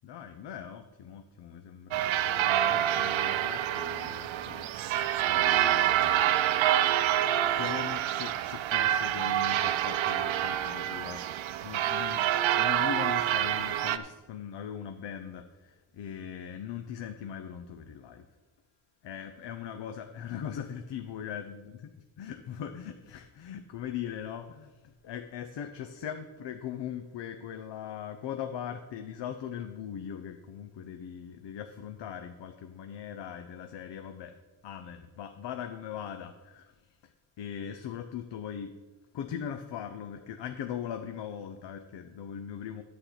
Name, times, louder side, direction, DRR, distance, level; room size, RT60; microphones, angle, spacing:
voice 1, 0.0-6.3 7.5-18.3 19.0-21.6 22.2-34.4 34.6-37.1 37.4-38.8 39.1-42.8, left 9 dB, 65° left, 7 dB, 0.7 m, -40 dB
sound 1, 1.9-14.0, right 12 dB, 80° right, 0.6 m, -27 dB
11.5 x 4.4 x 8.0 m, 1.2 s
wide cardioid pair, 180°, 46 cm